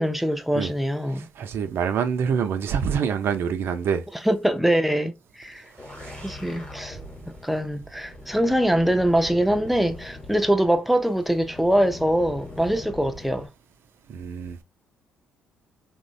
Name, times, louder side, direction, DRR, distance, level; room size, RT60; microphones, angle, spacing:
voice 1, 0.0-1.3 4.2-5.6 6.2-7.0 7.3-13.5, right 1 dB, 5° right, 0.5 m, -23 dB
voice 2, 1.1-4.0 5.8-6.3 14.1-14.6, right 7 dB, 60° right, 0.5 m, -26 dB
sound 1, 5.6-13.5, left 2 dB, 25° left, 1.0 m, -42 dB
3.0 x 2.1 x 2.6 m
hypercardioid pair, 55°, 4 cm